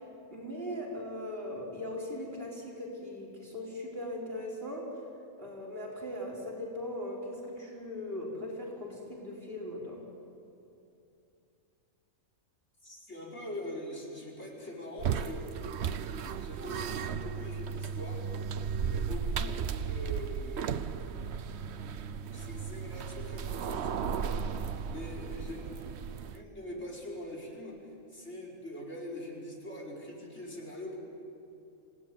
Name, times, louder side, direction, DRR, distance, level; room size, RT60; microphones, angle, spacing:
voice 1, 0.3-4.9 5.4-10.0, left 1 dB, 40° right, -2 dB, 5.1 m, -39 dB
voice 2, 12.8-15.6 16.3-21.2 22.3-25.8 26.3-31.0, left 1 dB, 50° left, -1 dB, 5.2 m, -43 dB
sound 1, 15.0-26.4, right 7 dB, 55° right, 0.9 m, -35 dB
27.5 x 18.0 x 9.6 m, 2.7 s
omnidirectional pair, 1.5 m